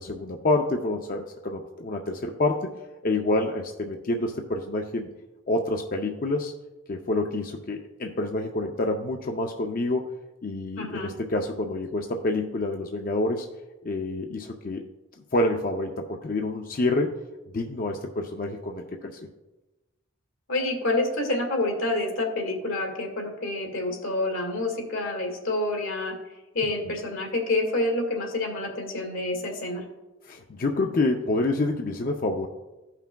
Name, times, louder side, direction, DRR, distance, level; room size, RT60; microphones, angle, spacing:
voice 1, 0.0-2.7 3.0-5.1 5.5-6.5 6.9-10.1 10.4-13.5 13.8-14.8 15.3-17.1 17.5-19.2 30.2-32.5, left 2 dB, 45° left, 3 dB, 0.5 m, -27 dB
voice 2, 10.8-11.1 20.5-26.2 26.5-29.8, left 2 dB, 75° left, 1 dB, 1.8 m, -28 dB
15.5 x 5.8 x 2.2 m, 1.1 s
head